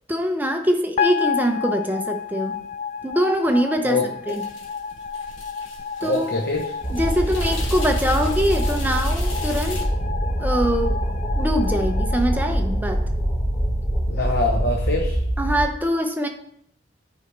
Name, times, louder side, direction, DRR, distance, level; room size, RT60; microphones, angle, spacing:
voice 1, 0.1-2.6 3.0-4.0 4.3-4.4 6.0-6.3 6.9-9.9 10.4-11.0 11.4-13.0 15.4-16.3, equal, 10° right, 4 dB, 0.6 m, -23 dB
sound 1, 1.0-13.2, left 7 dB, 40° left, 0.3 m, -31 dB
voice 2, 3.8-4.3 6.0-6.7 14.1-15.2, left 2 dB, 55° left, 1 dB, 0.8 m, -24 dB
sound 2, 4.3-9.8, left 2 dB, 85° left, 1.5 m, -37 dB
sound 3, 6.8-15.6, equal, 15° left, 2.6 m, -24 dB
9.6 x 5.0 x 3.3 m, 0.71 s
head